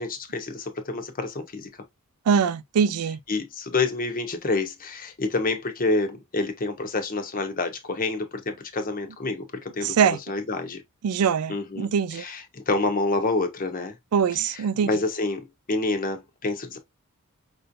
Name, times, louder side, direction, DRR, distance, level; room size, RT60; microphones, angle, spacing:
voice 1, 0.0-1.7 3.3-10.8 11.5-13.9 14.3-14.6 14.9-16.8, left 3 dB, 40° left, 0.8 m, -28 dB
voice 2, 2.3-3.2 9.8-10.2 11.0-12.2 14.1-14.9, right 7 dB, 80° right, 0.4 m, -23 dB
5.4 x 2.7 x 2.5 m
head